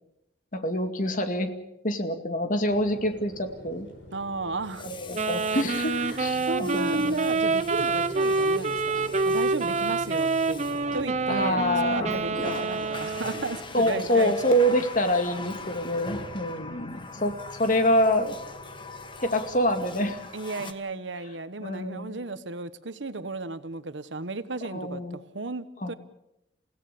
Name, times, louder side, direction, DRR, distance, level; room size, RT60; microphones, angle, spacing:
voice 1, 0.5-1.5 1.8-3.9 4.8-7.3 11.3-12.2 13.7-18.4 19.2-20.3 21.6-22.1 24.7-25.2 25.8-25.9, equal, 45° left, 7 dB, 2.3 m, -26 dB
Water tap faucet, 1.0-1.2 4.6-11.4 12.0-20.7, left 3 dB, 25° left, 1.6 m, -42 dB
sound 1, 2.7-20.3, left 1 dB, 90° left, 5.4 m, -46 dB
voice 2, 4.1-4.9 5.8-10.6 10.9-14.3 20.3-25.9, right 3 dB, 85° right, 13 dB, 1.2 m, -34 dB
Wind instrument woodwind instrument, 5.1-13.6, right 3 dB, 40° right, 0.9 m, -27 dB
29.0 x 16.5 x 6.9 m, 0.87 s
head